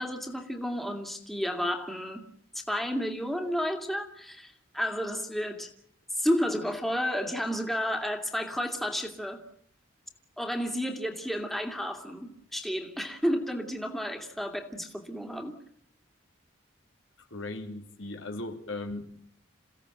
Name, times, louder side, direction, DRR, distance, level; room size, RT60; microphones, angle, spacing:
voice 1, 0.0-2.3 2.5-5.7 6.2-9.4 10.4-15.5, equal, ahead, 2.6 m, -31 dB
voice 2, 17.2-19.1, left 2 dB, 70° left, 3.3 m, -38 dB
28.5 x 16.5 x 9.1 m
head